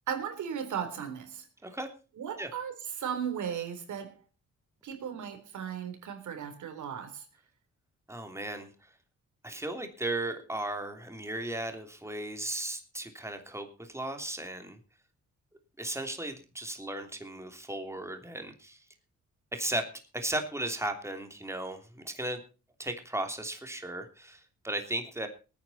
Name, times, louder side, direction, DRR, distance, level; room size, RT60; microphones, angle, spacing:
voice 1, 0.1-1.5 2.2-4.2 4.8-7.3, right 8 dB, 80° right, 3.8 m, -36 dB
voice 2, 8.1-8.9 9.4-14.8 15.8-18.8 19.5-19.9 20.1-22.4 22.8-25.3, right 1 dB, 10° right, 3.1 m, -36 dB
20.5 x 9.7 x 4.2 m
cardioid pair, 85°, 29 cm